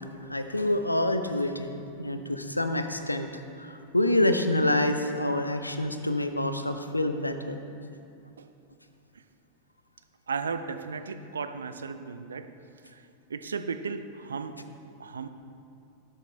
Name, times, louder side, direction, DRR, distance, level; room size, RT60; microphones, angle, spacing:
voice 1, 0.3-1.7 2.0-7.6, left 1 dB, 85° left, 8 dB, 0.5 m, -27 dB
voice 2, 10.3-12.5 12.9-13.0 13.3-14.6 15.0-15.3, right 5 dB, 70° right, 10 dB, 0.5 m, -35 dB
12.5 x 8.2 x 3.3 m, 2.5 s
figure-of-eight pair, 90°, 0 cm